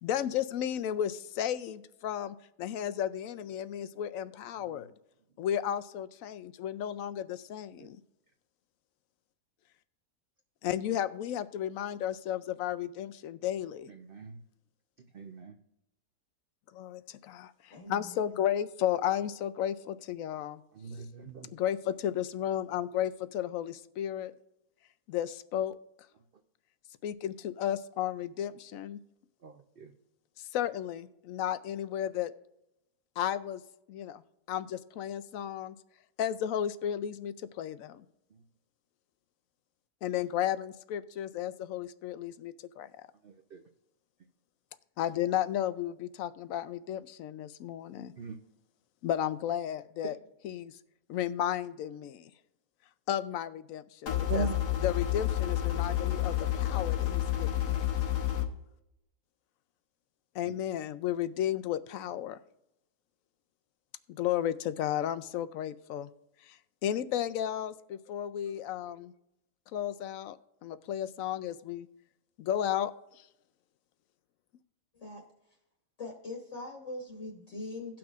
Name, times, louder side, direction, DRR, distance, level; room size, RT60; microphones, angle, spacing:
voice 1, 0.0-4.9 5.4-8.0 10.6-13.9 16.7-20.6 21.5-24.3 25.1-25.8 27.0-29.0 30.4-32.3 33.2-33.6 33.9-34.2 34.5-35.8 36.2-38.1 40.0-42.9 45.0-48.1 49.0-50.2 50.4-50.8 51.1-52.3 53.1-54.5 54.8-57.8 60.3-62.4 64.1-66.1 66.4-69.1 69.7-71.9 72.4-73.3, left 10 dB, 70° left, 13 dB, 0.9 m, -33 dB
voice 2, 13.9-14.4 15.1-15.6 20.8-21.5 29.4-29.9 43.2-43.6 48.2-48.4 54.3-54.6 60.5-60.6, right 5 dB, 55° right, 4 dB, 0.6 m, -40 dB
voice 3, 17.7-18.4 74.9-75.2 76.0-78.0, left 2 dB, 50° left, 0 dB, 1.5 m, -42 dB
sound 1, 54.1-58.4, left 12 dB, 90° left, 1.6 m, -30 dB
18.0 x 6.1 x 2.4 m, 0.86 s
omnidirectional pair, 1.7 m